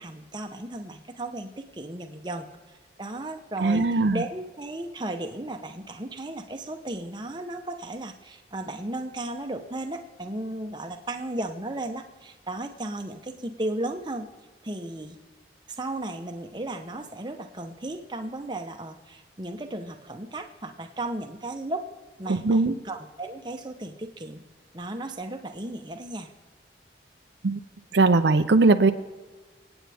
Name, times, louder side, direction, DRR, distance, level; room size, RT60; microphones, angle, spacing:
voice 1, 0.0-2.5 3.0-14.3 14.6-15.2 15.7-21.9 22.2-24.4 24.7-26.3, right 1 dB, 25° right, 5 dB, 0.9 m, -35 dB
voice 2, 3.6-4.2 22.3-22.8 27.4-27.6 27.9-28.9, right 3 dB, 70° right, 8 dB, 0.6 m, -20 dB
27.0 x 8.9 x 3.5 m, 1.3 s
head